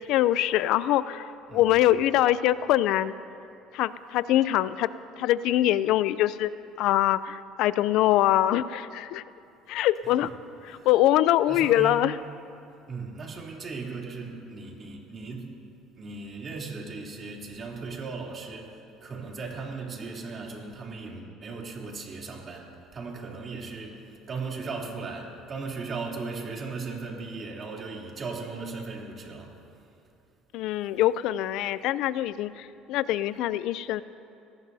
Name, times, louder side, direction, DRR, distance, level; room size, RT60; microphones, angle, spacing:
voice 1, 0.1-3.1 3.7-4.9 5.2-6.5 6.8-9.2 9.7-10.3 10.6-12.2 30.5-34.0, left 13 dB, 70° left, 16 dB, 0.4 m, -24 dB
voice 2, 11.5-12.0 12.9-15.5 16.0-29.5, right 4 dB, 35° right, -2 dB, 3.1 m, -37 dB
25.0 x 18.5 x 2.7 m, 2.6 s
cardioid pair, 115°, 0 cm